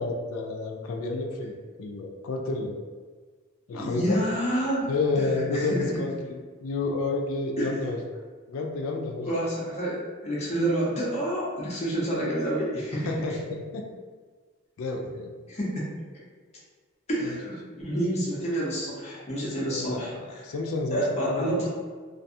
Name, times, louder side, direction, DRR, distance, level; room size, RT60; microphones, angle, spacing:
voice 1, 0.0-2.8 3.7-4.2 4.9-8.0 8.5-9.3 12.9-13.9 14.8-15.3 17.2-17.4 19.6-21.6, left 3 dB, 75° left, 1 dB, 0.3 m, -30 dB
voice 2, 3.7-4.9 5.2-5.9 7.6-7.7 9.2-13.4 15.5-15.8 17.1-20.4 20.9-21.7, right 1 dB, 30° left, -6 dB, 0.6 m, -29 dB
2.4 x 2.3 x 2.6 m, 1.5 s
head